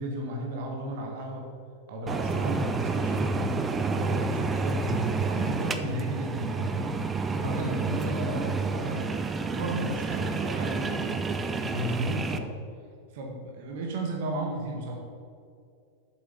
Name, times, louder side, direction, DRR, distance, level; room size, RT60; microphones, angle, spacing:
voice 1, 0.0-1.5 1.9-3.3 3.8-7.0 7.4-9.1 9.5-11.2 11.6-12.5 13.1-14.9, right 1 dB, 50° right, 0 dB, 1.7 m, -34 dB
sound 1, 2.1-12.4, right 3 dB, 15° right, 0.6 m, -29 dB
7.9 x 7.5 x 5.3 m, 2.3 s
figure-of-eight pair, 90°, 0 cm